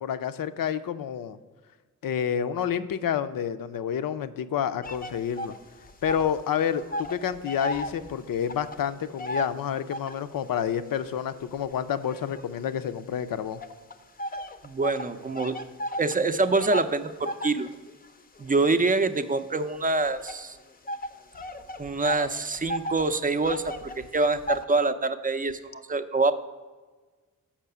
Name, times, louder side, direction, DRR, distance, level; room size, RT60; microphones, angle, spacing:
voice 1, 0.0-1.4 2.0-5.5 6.0-13.6, left 8 dB, 75° left, 12 dB, 0.6 m, -29 dB
sound 1, 4.8-6.4 6.7-10.3 10.9-13.0 13.6-24.7, equal, 25° left, 0.5 m, -36 dB
voice 2, 14.6-15.5 16.0-17.7 18.4-20.6 21.8-26.3, right 3 dB, 25° right, 10 dB, 0.5 m, -25 dB
7.4 x 5.6 x 6.8 m, 1.4 s
wide cardioid pair, 130°, 34 cm